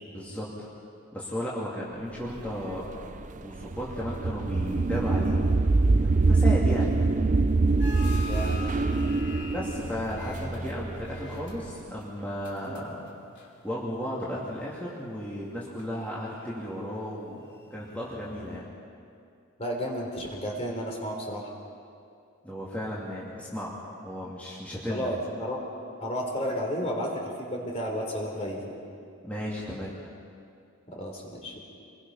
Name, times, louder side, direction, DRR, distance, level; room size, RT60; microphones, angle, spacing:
voice 1, 0.1-0.7 1.1-2.8 3.4-5.4 6.0-6.9 9.5-13.1 13.6-17.4 17.7-18.7 22.4-23.7 24.0-25.1 29.2-30.0, equal, 5° left, -7 dB, 2.8 m, -34 dB
sound 1, 2.4-11.4, right 3 dB, 35° right, 0.5 m, -24 dB
sound 2, 7.8-14.0 14.3-14.9 15.5-18.6, left 1 dB, 50° left, 3.2 m, -42 dB
voice 2, 8.2-8.6 19.6-21.5 24.9-25.6 26.0-28.7 30.9-31.6, equal, 30° left, 0 dB, 3.6 m, -32 dB
27.0 x 21.5 x 5.7 m, 2.5 s
head